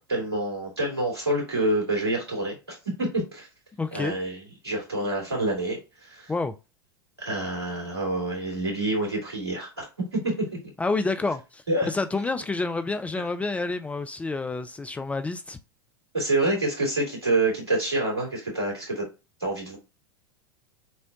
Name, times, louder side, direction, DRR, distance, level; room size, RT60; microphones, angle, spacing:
voice 1, 0.1-3.5 3.9-6.3 7.2-9.9 10.1-10.5 11.7-11.9 16.1-19.0 19.4-19.8, right 2 dB, 80° right, 2.4 m, -27 dB
voice 2, 3.8-4.1 6.3-6.5 10.8-15.6, left 3 dB, 10° left, 0.3 m, -29 dB
6.3 x 2.1 x 2.6 m
figure-of-eight pair, 85°, 13 cm